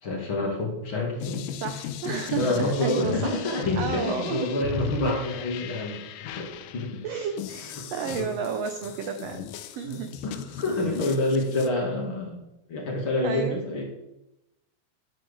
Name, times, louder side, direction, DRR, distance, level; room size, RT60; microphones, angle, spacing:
voice 1, 0.0-1.5 2.4-6.5 6.7-7.0 7.7-8.3 9.8-13.8, left 2 dB, 40° left, -1 dB, 2.7 m, -28 dB
sound 1, 1.2-11.7, left 9 dB, 80° left, 2.1 m, -37 dB
voice 2, 1.6-3.3 3.8-4.7 5.0-5.1 7.0-10.1 13.2-13.6, right 7 dB, 85° right, 6 dB, 1.4 m, -32 dB
10.5 x 6.2 x 6.9 m, 0.92 s
omnidirectional pair, 3.9 m